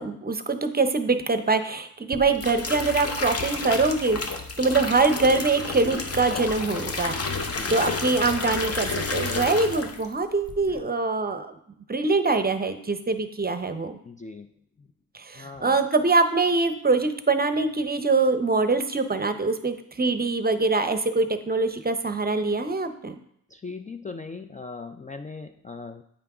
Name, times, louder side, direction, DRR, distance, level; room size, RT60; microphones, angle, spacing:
voice 1, 0.0-4.2 4.6-11.6 11.9-14.0 15.1-23.2, right 3 dB, 25° right, 9 dB, 0.7 m, -24 dB
sound 1, 2.1-10.1 10.4-10.8, left 3 dB, 40° left, 0.9 m, -30 dB
voice 2, 14.0-14.5 14.8-14.9 15.4-15.8 23.5-26.0, left 4 dB, 20° left, 7 dB, 0.4 m, -39 dB
8.6 x 3.4 x 4.8 m, 0.70 s
supercardioid pair, 50°, 37 cm